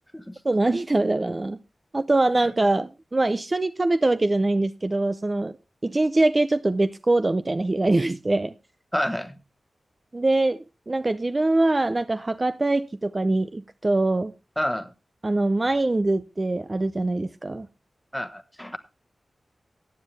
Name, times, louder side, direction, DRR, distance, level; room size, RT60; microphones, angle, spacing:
voice 1, 0.4-1.6 1.9-5.6 5.8-8.5 10.1-14.3 15.2-17.7, right 2 dB, 35° right, 0.6 m, -23 dB
voice 2, 8.9-9.4 14.6-14.9 18.1-18.8, equal, 5° left, 1.2 m, -28 dB
15.0 x 9.3 x 3.3 m
cardioid pair, 65°, 0 cm